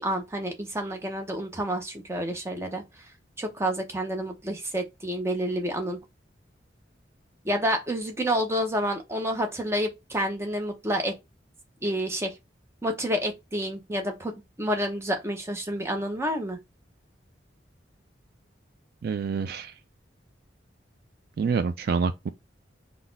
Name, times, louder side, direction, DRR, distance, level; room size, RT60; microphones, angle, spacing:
voice 1, 0.0-2.8 3.4-6.0 7.4-11.1 11.8-12.3 12.8-14.3 14.6-16.6, equal, 15° right, 0.7 m, -29 dB
voice 2, 19.0-19.7 21.4-22.3, right 5 dB, 55° right, 0.3 m, -27 dB
4.0 x 2.3 x 3.9 m
head